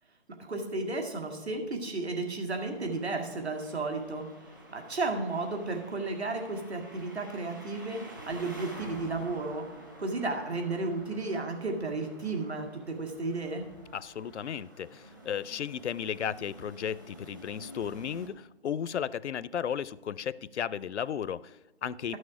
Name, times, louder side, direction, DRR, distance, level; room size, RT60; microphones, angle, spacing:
voice 1, 0.4-4.3 4.7-8.0 8.3-9.7 10.0-13.6, right 3 dB, 65° right, 4 dB, 2.1 m, -33 dB
sound 1, 2.6-18.3, right 1 dB, 20° right, 0.7 m, -50 dB
voice 2, 13.9-22.2, left 8 dB, 80° left, 19 dB, 0.5 m, -34 dB
12.5 x 6.3 x 4.9 m, 1.1 s
hypercardioid pair, 170°, 34 cm